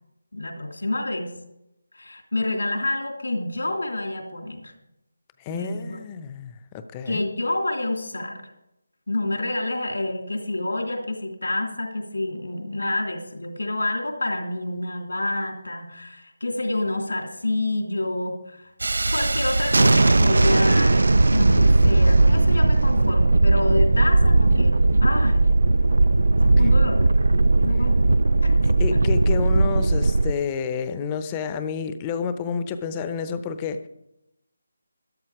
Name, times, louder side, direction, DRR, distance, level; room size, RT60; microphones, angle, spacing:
voice 1, 0.3-1.3 1.9-4.7 5.5-6.0 7.0-8.4 9.1-18.7 19.1-25.4 26.4-28.0 28.4-28.5, left 2 dB, 80° left, 3 dB, 3.0 m, -28 dB
voice 2, 5.4-7.2 28.6-33.9, left 6 dB, 20° left, 10 dB, 0.7 m, -30 dB
Thunderstorm, 18.8-30.3, right 2 dB, 75° right, 0.5 m, -18 dB
13.0 x 11.5 x 4.8 m, 0.87 s
figure-of-eight pair, 160°, 0 cm